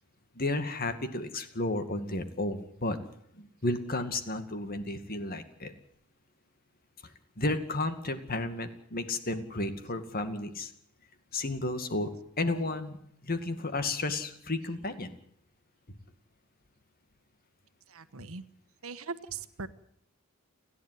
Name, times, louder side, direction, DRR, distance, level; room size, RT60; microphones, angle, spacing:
voice 1, 0.4-3.0 3.4-5.7 7.4-10.7 11.3-12.1 12.4-13.0 13.2-15.1, left 2 dB, 45° left, 9 dB, 2.2 m, -32 dB
voice 2, 17.9-18.4 18.8-19.7, right 4 dB, 70° right, 12 dB, 1.3 m, -40 dB
30.0 x 11.0 x 9.4 m, 0.70 s
head